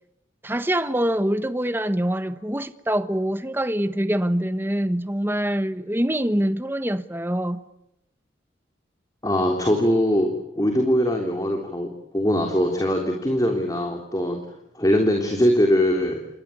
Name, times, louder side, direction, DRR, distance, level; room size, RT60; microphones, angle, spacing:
voice 1, 0.4-7.6, right 1 dB, 10° right, 1.1 m, -24 dB
voice 2, 9.2-10.3 10.6-11.9 12.1-14.4 14.8-16.2, equal, 20° left, 3.4 m, -21 dB
28.5 x 24.0 x 8.6 m
head